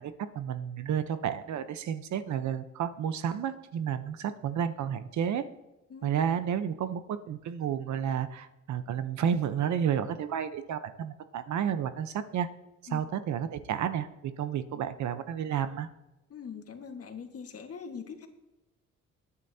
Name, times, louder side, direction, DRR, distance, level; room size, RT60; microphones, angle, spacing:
voice 1, 0.0-5.5 6.0-12.5 12.8-15.9, right 8 dB, 70° right, 11 dB, 0.9 m, -31 dB
voice 2, 16.3-18.3, left 6 dB, 50° left, 5 dB, 1.7 m, -42 dB
20.0 x 9.7 x 2.8 m, 0.99 s
cardioid pair, 90°, 30 cm